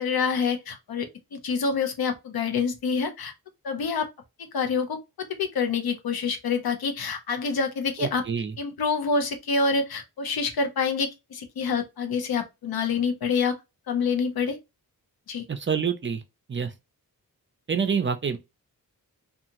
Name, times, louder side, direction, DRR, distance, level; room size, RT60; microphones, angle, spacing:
voice 1, 0.0-3.3 3.6-4.1 4.5-8.2 8.6-13.6 13.9-14.6 15.3-15.4, left 5 dB, 80° left, 0.7 m, -27 dB
voice 2, 8.0-8.5 15.5-16.2 16.5-16.7 17.7-18.4, right 6 dB, 35° right, 0.5 m, -27 dB
2.8 x 2.4 x 2.6 m
wide cardioid pair, 90°, 36 cm